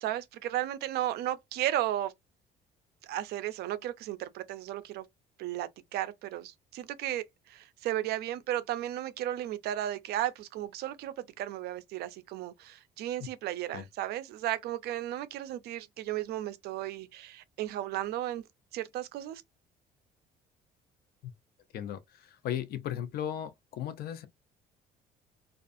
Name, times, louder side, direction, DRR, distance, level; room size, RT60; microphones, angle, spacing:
voice 1, 0.0-2.1 3.0-5.0 5.4-18.4 18.7-19.4, right 13 dB, 70° right, 0.4 m, -34 dB
voice 2, 21.7-24.3, left 10 dB, 65° left, 0.5 m, -36 dB
2.4 x 2.4 x 2.5 m
cardioid pair, 110°, 17 cm